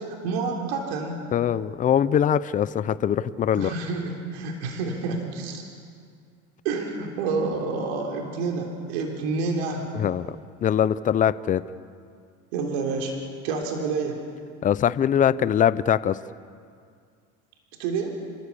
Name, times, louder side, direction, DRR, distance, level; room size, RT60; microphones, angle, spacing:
voice 1, 0.0-1.2 3.5-5.6 6.6-9.9 12.5-14.2 17.8-18.2, right 4 dB, 85° right, 2 dB, 3.5 m, -28 dB
voice 2, 1.3-3.7 9.9-10.4 10.6-11.6 14.6-16.2, left 9 dB, 25° left, 16 dB, 0.6 m, -22 dB
29.0 x 16.0 x 8.6 m, 2.2 s
supercardioid pair, 125°, 31 cm